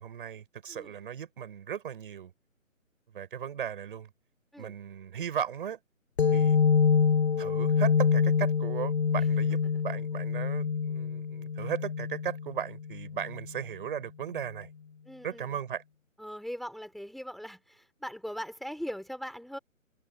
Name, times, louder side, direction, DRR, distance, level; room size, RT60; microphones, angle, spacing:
voice 1, 0.0-2.3 3.1-4.1 4.6-5.8 6.3-6.6 7.4-14.7 15.2-15.8, right 8 dB, 40° right, 7.9 m, -36 dB
voice 2, 0.7-1.0 4.5-4.8 9.2-9.3 9.7-9.8 15.0-15.6 16.2-19.6, equal, ahead, 4.3 m, -40 dB
sound 1, 6.2-13.5, left 6 dB, 50° left, 7.3 m, -26 dB
figure-of-eight pair, 145°, 41 cm